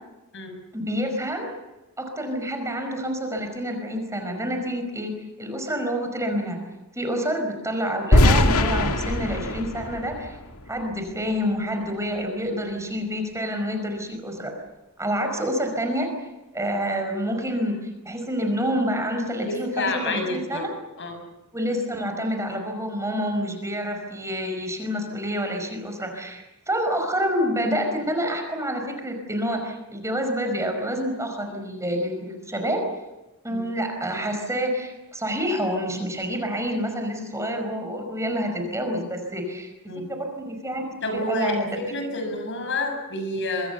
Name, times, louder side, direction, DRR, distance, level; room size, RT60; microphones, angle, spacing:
voice 1, 0.7-1.5 2.0-6.6 6.9-10.4 10.7-14.5 15.0-16.1 16.5-20.7 21.5-32.8 33.4-39.7 40.1-40.8 41.1-41.6, equal, 15° right, 4 dB, 5.1 m, -28 dB
sound 1, 8.1-11.1, left 1 dB, 80° left, 2.2 m, -21 dB
voice 2, 19.4-20.7 21.0-21.1 33.5-33.6 39.9-40.1 41.0-41.6 41.9-43.7, left 2 dB, 55° left, 5 dB, 7.4 m, -28 dB
26.0 x 24.0 x 7.0 m, 1.0 s
head